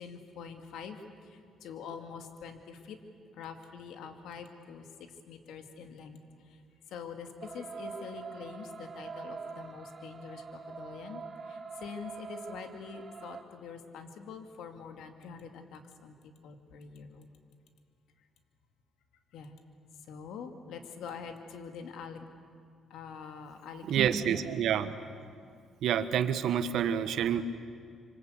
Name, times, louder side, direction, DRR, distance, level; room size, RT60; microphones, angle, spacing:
voice 1, 0.0-3.0 3.3-4.9 5.3-6.2 6.4-6.6 6.9-17.3 19.3-19.6 20.0-22.3 22.9-24.0, left 6 dB, 85° left, 6 dB, 2.4 m, -45 dB
sound 1, 7.4-13.4, right 5 dB, 40° right, 2.1 m, -44 dB
voice 2, 23.8-24.9 25.8-27.4, right 9 dB, 80° right, 11 dB, 1.4 m, -28 dB
26.0 x 25.5 x 8.3 m, 2.2 s
cardioid pair, 90°, 0 cm